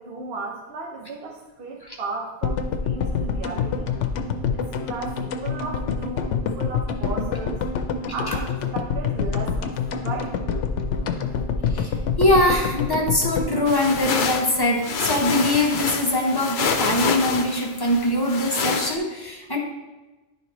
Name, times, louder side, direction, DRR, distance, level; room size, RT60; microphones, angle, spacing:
voice 1, 0.0-3.9 4.5-6.3 6.5-7.6 8.1-9.7 10.0-10.3, right 3 dB, 60° right, -1 dB, 1.1 m, -35 dB
sound 1, 2.4-14.7 14.9-15.0 15.2-15.3, left 6 dB, 75° left, 0.9 m, -26 dB
voice 2, 11.7-19.6, left 1 dB, 20° left, -2 dB, 0.9 m, -22 dB
sound 2, 13.7-19.0, left 5 dB, 55° left, 0.6 m, -27 dB
10.5 x 4.2 x 3.0 m, 1.1 s
omnidirectional pair, 1.2 m